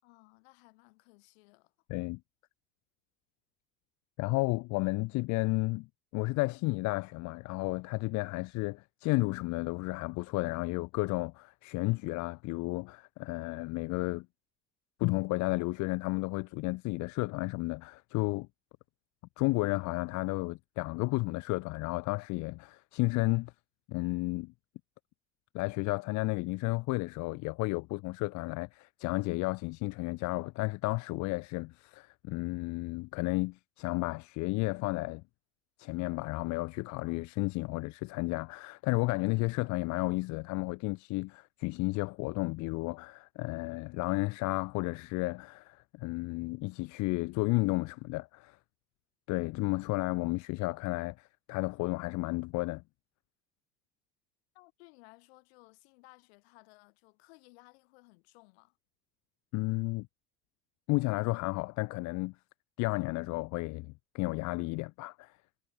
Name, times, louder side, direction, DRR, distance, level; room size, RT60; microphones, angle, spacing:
voice 1, 0.0-1.7 54.5-58.8, left 26 dB, 85° left, 6.9 m, -59 dB
voice 2, 1.9-2.2 4.2-5.9 6.1-14.3 15.0-18.5 19.4-23.5 23.9-24.5 25.5-35.2 35.8-48.6 49.3-52.8 59.5-60.1 60.9-62.3 62.8-65.4, left 23 dB, 65° left, 0.6 m, -32 dB
supercardioid pair, 80°, 31 cm